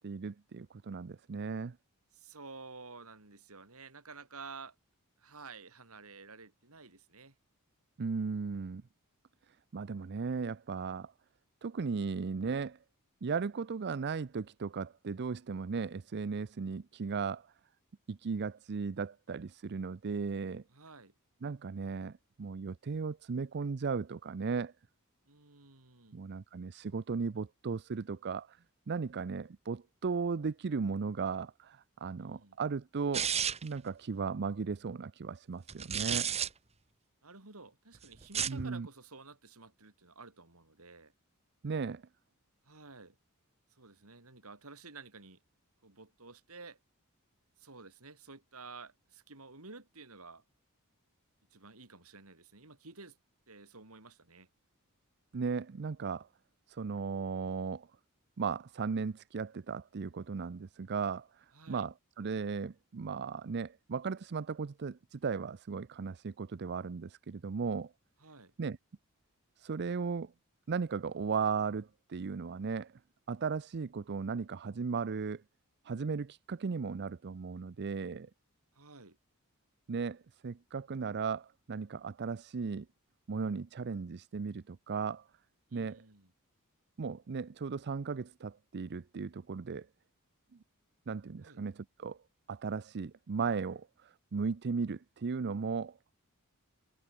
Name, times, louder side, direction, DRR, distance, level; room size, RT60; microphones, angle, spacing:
voice 1, 0.0-1.8 8.0-8.8 9.7-11.1 11.6-12.8 13.2-17.5 18.1-20.6 21.4-24.7 26.1-28.6 28.9-33.3 33.6-36.3 38.5-38.9 41.6-42.0 55.3-56.3 56.7-57.9 58.4-67.9 68.6-68.8 69.6-70.3 70.7-72.9 73.3-75.4 75.8-78.3 79.9-82.9 83.3-85.2 85.7-86.0 87.0-89.9 91.1-92.2 92.5-96.0, right 5 dB, 50° right, 0.5 m, -36 dB
voice 2, 2.1-4.8 5.2-7.3 20.7-21.1 25.3-26.2 32.2-32.6 37.2-41.1 42.7-43.2 43.7-45.4 45.8-46.8 47.6-50.4 51.5-53.2 53.5-54.5 61.5-61.9 68.2-68.5 78.7-79.2 85.7-86.3 91.4-91.6, right 4 dB, 75° right, 3.6 m, -52 dB
sound 1, 33.1-33.8 35.7-36.5 38.2-38.7, right 8 dB, 30° right, 0.9 m, -32 dB
head